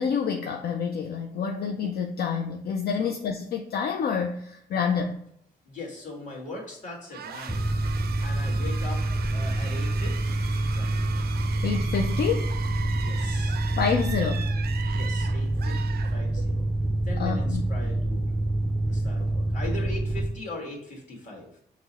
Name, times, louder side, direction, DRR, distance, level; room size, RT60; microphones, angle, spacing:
voice 1, 0.0-5.2 11.6-12.5 13.8-14.5 17.2-17.6, left 6 dB, 70° left, 4 dB, 0.4 m, -28 dB
voice 2, 5.6-7.9 8.2-9.0 9.3-11.1 12.9-13.6 14.8-16.7 17.0-18.3 18.8-21.6, left 2 dB, 45° left, -2 dB, 1.7 m, -40 dB
sound 1, 7.1-16.7, right 7 dB, 70° right, 0.4 m, -39 dB
Mechanical fan, 7.5-20.3, right 1 dB, 5° right, 0.4 m, -27 dB
5.9 x 2.1 x 4.0 m, 0.71 s
cardioid pair, 110°, 17 cm